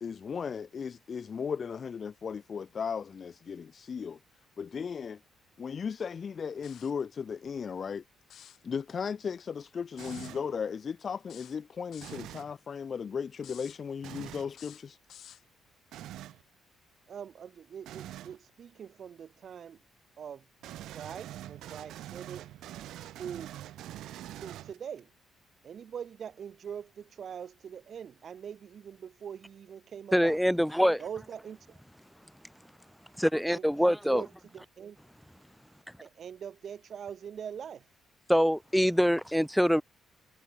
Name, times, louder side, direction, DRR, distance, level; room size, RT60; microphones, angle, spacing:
voice 1, 0.0-4.2 4.6-5.2 5.6-8.0 8.6-15.0, left 6 dB, 45° left, 0.5 m, -36 dB
sound 1, 6.6-7.0 8.2-8.6 10.0-10.3 11.3-12.2 13.4-13.8 14.5-15.4, left 10 dB, 70° left, 2.5 m, -51 dB
sound 2, 10.0-10.5 12.0-12.5 14.0-14.5 15.9-16.4 17.9-18.4 20.6-25.0, right 13 dB, 85° right, 5.6 m, -44 dB
voice 2, 17.1-19.8 20.2-20.4 20.9-22.5 23.1-23.5 24.1-25.1 25.6-30.4 31.0-31.8 33.5-35.0 36.0-37.9, right 8 dB, 55° right, 2.8 m, -43 dB
voice 3, 30.1-31.0 33.2-34.2 38.3-39.8, equal, ahead, 0.6 m, -24 dB
cardioid pair, 90°, 0 cm